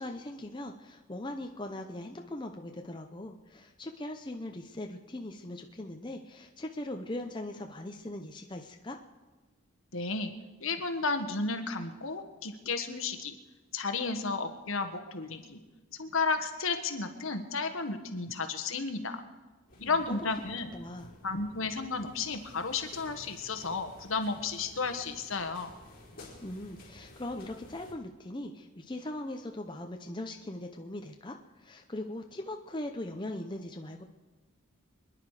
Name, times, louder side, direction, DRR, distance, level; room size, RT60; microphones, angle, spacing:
voice 1, 0.0-9.0 19.8-20.2 20.7-21.1 26.4-34.0, left 1 dB, 20° left, 4 dB, 0.7 m, -40 dB
voice 2, 9.9-10.3 10.6-13.3 13.7-15.6 16.0-19.2 19.8-20.7 21.2-25.7, left 4 dB, 65° left, 7 dB, 1.4 m, -33 dB
sound 1, 19.7-27.9, left 1 dB, 40° left, 4.8 m, -53 dB
26.0 x 10.5 x 4.9 m, 1.2 s
head